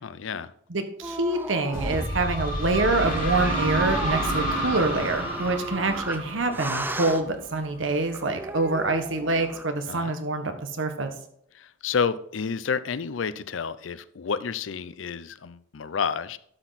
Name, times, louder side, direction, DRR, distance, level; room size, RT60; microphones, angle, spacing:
voice 1, 0.0-0.5 9.9-10.1 11.5-16.4, left 6 dB, 80° left, 15 dB, 0.5 m, -30 dB
voice 2, 0.7-11.1, right 2 dB, 85° right, 7 dB, 1.3 m, -26 dB
sound 1, 1.0-9.6, right 2 dB, 10° right, 0.5 m, -36 dB
sound 2, 1.7-7.4, right 1 dB, 45° left, 4.6 m, -29 dB
12.0 x 6.2 x 4.1 m, 0.70 s
head